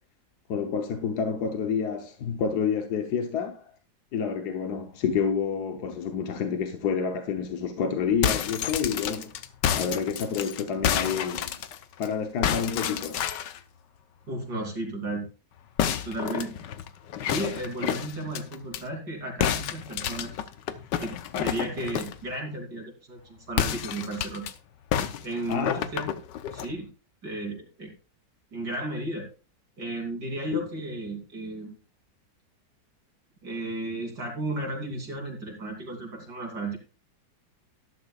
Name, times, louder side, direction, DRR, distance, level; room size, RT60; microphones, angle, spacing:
voice 1, 0.5-3.6 4.1-9.3 9.7-11.6 12.0-13.2 25.5-25.9 30.5-30.6, left 6 dB, 65° left, 1.4 m, -28 dB
sound 1, 8.0-12.1 12.4-13.6 15.8-18.8 19.4-22.2 23.5-24.5 24.9-26.7, left 9 dB, 90° left, 1.4 m, -29 dB
voice 2, 14.3-15.3 16.0-16.6 17.3-20.3 21.0-24.5 25.2-26.1 26.5-26.9 27.2-27.9 28.5-29.3 29.8-31.8 33.4-36.8, right 2 dB, 70° right, 3.7 m, -34 dB
12.5 x 12.0 x 2.4 m
omnidirectional pair, 1.9 m